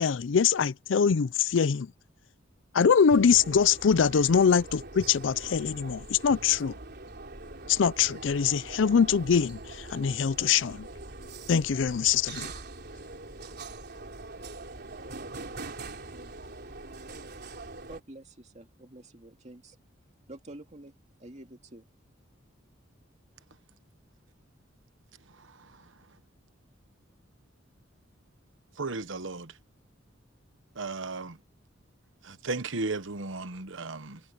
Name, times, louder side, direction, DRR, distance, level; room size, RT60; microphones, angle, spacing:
voice 1, 0.0-1.9 2.7-6.7 7.7-10.9 11.5-12.5, left 6 dB, 70° left, 0.5 m, -23 dB
sound 1, 3.1-18.0, right 2 dB, 55° right, 4.0 m, -43 dB
voice 2, 17.9-19.8 20.3-20.9 21.2-21.9, right 2 dB, 35° right, 2.2 m, -47 dB
voice 3, 25.4-25.7 28.8-29.5 30.8-31.4 32.2-34.2, right 3 dB, 80° right, 1.2 m, -35 dB
head